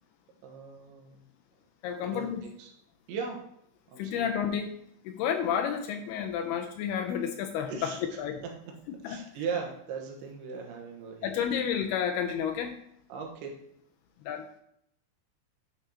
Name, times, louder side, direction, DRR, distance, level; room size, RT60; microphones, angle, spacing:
voice 1, 0.4-1.2 2.0-2.7 3.1-3.5 3.9-4.3 7.7-8.0 8.7-8.8 9.0-11.4 13.1-13.6, right 5 dB, 90° right, 1 dB, 3.6 m, -38 dB
voice 2, 1.8-2.4 4.0-4.7 5.0-8.4 8.9-9.2 11.2-12.8 14.2-14.6, left 8 dB, 85° left, 6 dB, 2.3 m, -31 dB
10.5 x 6.1 x 2.9 m, 0.74 s
omnidirectional pair, 5.1 m